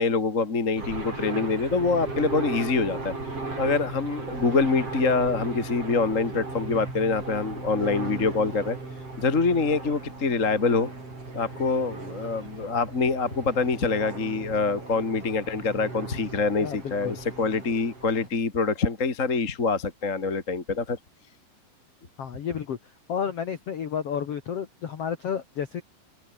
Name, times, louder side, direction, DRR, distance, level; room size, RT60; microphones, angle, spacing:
voice 1, 0.0-3.1 3.6-8.8 9.2-10.9 11.3-21.0, left 4 dB, 25° left, 1.7 m, -25 dB
sound 1, 0.8-18.3, right 3 dB, 35° right, 8.5 m, -37 dB
voice 2, 16.6-17.2 22.2-22.8 23.1-25.8, left 8 dB, 55° left, 1.8 m, -31 dB
open air
omnidirectional pair, 4.9 m